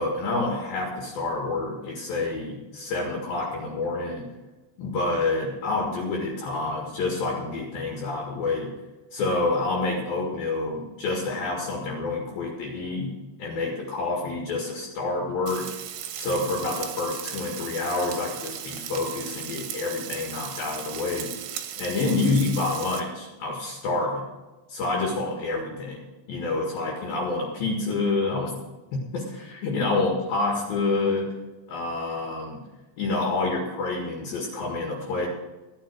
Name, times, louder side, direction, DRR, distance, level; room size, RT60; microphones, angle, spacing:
voice 1, 0.0-4.3 4.8-8.7 9.1-13.1 13.4-15.7 16.2-21.3 21.8-24.3 24.7-26.0 26.3-28.6 29.1-31.3 31.7-32.6 33.0-35.3, left 3 dB, 55° left, 0 dB, 3.2 m, -28 dB
Frying (food), 15.5-23.0, right 10 dB, 70° right, 3.1 m, -37 dB
15.0 x 10.5 x 4.6 m, 1.2 s
omnidirectional pair, 5.8 m